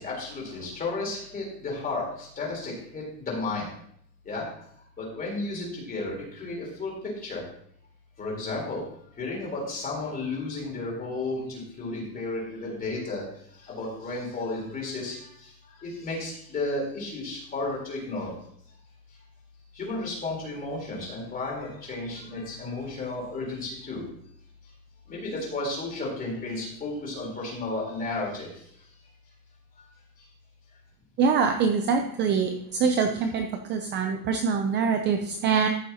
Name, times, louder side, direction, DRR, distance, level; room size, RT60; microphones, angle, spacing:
voice 1, 0.0-3.7 4.3-4.4 5.0-7.4 8.2-8.8 9.2-13.3 13.6-15.5 15.8-18.3 19.7-24.0 25.1-28.5, left 2 dB, 20° left, -3 dB, 3.7 m, -33 dB
voice 2, 31.2-35.7, right 6 dB, 25° right, 5 dB, 0.5 m, -24 dB
14.0 x 6.7 x 2.9 m, 0.68 s
supercardioid pair, 160°, 42 cm